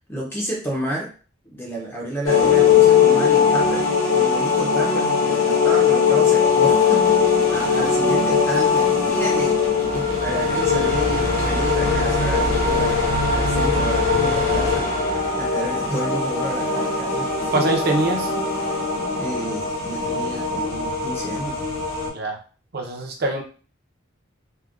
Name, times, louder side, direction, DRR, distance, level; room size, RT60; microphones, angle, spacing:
voice 1, 0.1-1.1 1.5-3.9 4.1-7.1 7.5-9.6 9.9-15.0 15.4-17.7 19.2-21.6, right 1 dB, 10° left, -2 dB, 0.5 m, -31 dB
sound 1, 2.3-22.1, left 5 dB, 70° left, 0.9 m, -20 dB
voice 2, 17.5-18.3 22.1-22.4 22.7-23.4, right 2 dB, 50° right, 2 dB, 0.6 m, -23 dB
3.5 x 2.1 x 2.3 m, 0.37 s
head